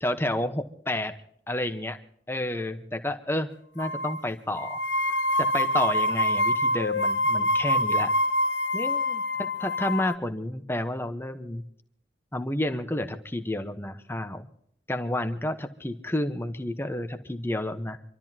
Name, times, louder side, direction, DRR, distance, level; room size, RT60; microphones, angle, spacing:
voice 1, 0.0-1.1 1.5-2.0 2.3-3.5 3.7-4.8 5.4-8.1 8.7-11.6 12.3-14.5 14.9-18.0, left 1 dB, 15° left, 7 dB, 1.1 m, -30 dB
sound 1, 3.8-4.2 4.6-10.2, left 1 dB, 80° left, 1.0 m, -25 dB
27.0 x 13.0 x 2.9 m, 0.69 s
head